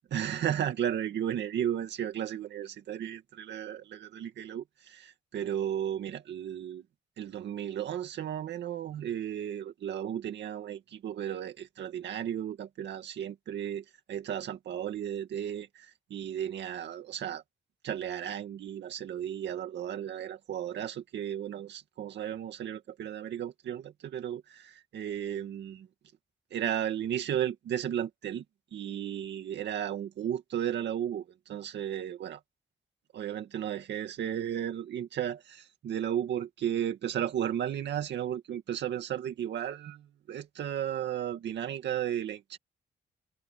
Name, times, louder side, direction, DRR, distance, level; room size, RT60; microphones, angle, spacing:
voice 1, 0.1-6.8 7.2-17.4 17.8-25.9 26.5-28.4 28.7-32.4 33.1-42.6, right 10 dB, 90° right, 2.1 m, -34 dB
cardioid pair, 110°, 18 cm